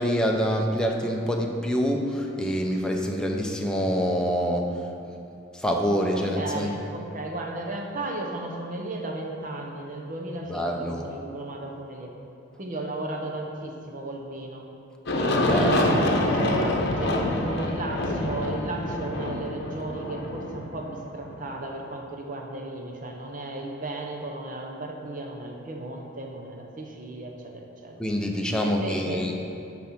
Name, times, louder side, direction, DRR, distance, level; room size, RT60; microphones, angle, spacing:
voice 1, 0.0-4.7 5.5-6.7 10.5-11.0 15.4-15.9 28.0-29.3, equal, 5° left, 1 dB, 0.6 m, -26 dB
voice 2, 6.1-12.1 12.6-14.6 15.5-28.0 28.6-29.2, right 2 dB, 40° right, 1 dB, 0.9 m, -34 dB
Aircraft, 15.1-21.8, left 1 dB, 55° left, 0.9 m, -26 dB
10.0 x 4.3 x 5.9 m, 2.6 s
head